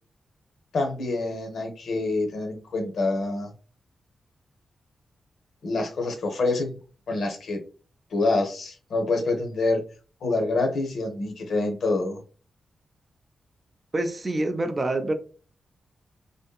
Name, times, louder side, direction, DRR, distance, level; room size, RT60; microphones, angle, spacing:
voice 1, 0.7-3.5 5.6-6.7 7.1-7.6 8.1-9.8 10.2-12.2, left 2 dB, 70° left, 0.6 m, -26 dB
voice 2, 13.9-15.1, right 2 dB, 25° right, 0.3 m, -26 dB
2.6 x 2.6 x 2.3 m
wide cardioid pair, 165°, 0 cm